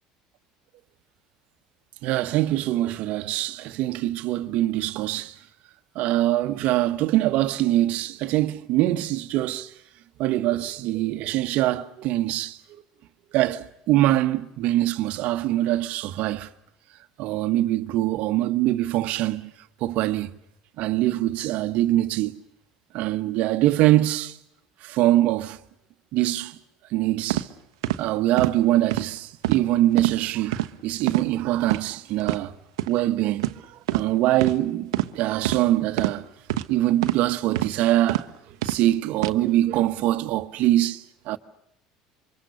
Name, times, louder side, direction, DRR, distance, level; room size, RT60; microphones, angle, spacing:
voice 1, 2.0-5.3 5.9-9.7 10.2-12.6 13.3-16.5 17.2-19.5 19.8-20.4 20.8-22.4 22.9-24.4 24.8-25.6 26.1-26.6 26.9-27.5 28.0-32.5 32.9-36.2 36.7-38.3 38.6-41.4, right 15 dB, 60° right, 1.2 m, -23 dB
sound 1, 27.3-27.4 27.8-28.0 28.4-28.5 28.9-29.1 29.4-29.6 30.0-30.1 30.5-30.7 31.1-31.3 31.6-31.8 32.2-32.4 32.8-32.9 33.4-33.6 33.9-34.1 34.4-34.6 34.9-35.1 35.4-35.6 36.0-36.1 36.5-36.7 37.0-37.2 37.6-37.7 38.1-38.2 38.6-38.8 39.2-39.3, right 15 dB, 80° right, 1.0 m, -25 dB
27.5 x 24.0 x 6.8 m
hypercardioid pair, 75°, 3 cm